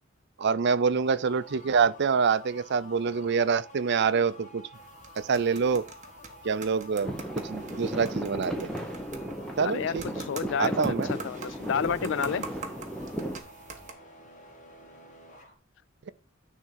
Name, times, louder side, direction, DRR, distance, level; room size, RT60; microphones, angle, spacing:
voice 1, 0.4-4.6 5.2-5.8 6.4-8.7 9.6-10.2 10.6-11.1, right 5 dB, 55° right, 0.5 m, -26 dB
sound 1, 0.9-15.5, equal, 40° left, 2.0 m, -51 dB
sound 2, 4.7-13.9, right 4 dB, 40° right, 1.4 m, -45 dB
sound 3, 7.0-13.4, equal, 5° left, 1.1 m, -35 dB
voice 2, 9.6-10.0 10.3-12.5, left 7 dB, 65° left, 0.4 m, -30 dB
10.0 x 3.7 x 5.8 m
head